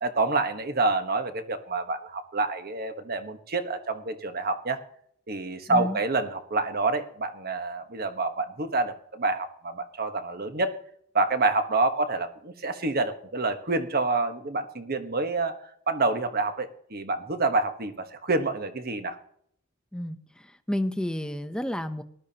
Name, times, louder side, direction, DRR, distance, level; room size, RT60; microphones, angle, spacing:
voice 1, 0.0-4.8 5.3-10.7 11.1-15.5 15.9-19.2, right 3 dB, 45° right, 7 dB, 1.2 m, -27 dB
voice 2, 5.7-6.0 19.9-20.2 20.7-22.0, left 1 dB, 5° left, 9 dB, 0.7 m, -30 dB
19.0 x 12.5 x 2.9 m, 0.65 s
head